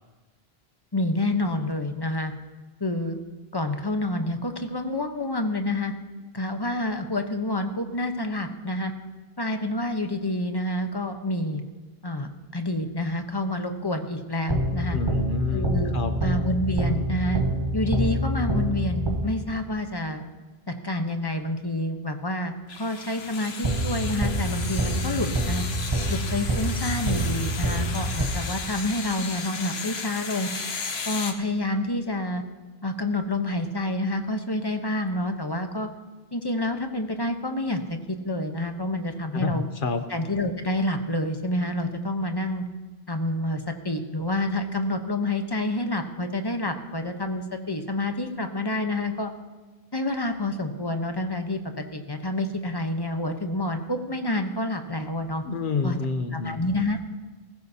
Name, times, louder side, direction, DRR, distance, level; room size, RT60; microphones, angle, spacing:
voice 1, 0.9-2.3 2.8-3.2 3.5-5.9 6.3-8.9 9.4-11.6 12.0-15.0 15.5-15.9 16.2-17.4 17.7-20.2 20.7-25.6 26.1-30.5 31.0-32.4 32.8-35.9 36.3-39.7 40.1-42.6 43.1-49.3 49.9-55.4 55.8-56.0 56.3-57.0, left 1 dB, 25° left, 6 dB, 0.9 m, -28 dB
sound 1, 14.5-19.6 23.6-28.8, right 1 dB, 30° right, 1.1 m, -27 dB
voice 2, 14.9-16.2 39.3-40.0 55.4-56.6, left 4 dB, 60° left, 9 dB, 0.9 m, -28 dB
sound 2, 22.7-31.3, left 5 dB, 85° left, 1.3 m, -35 dB
20.0 x 15.0 x 2.8 m, 1.2 s
omnidirectional pair, 1.0 m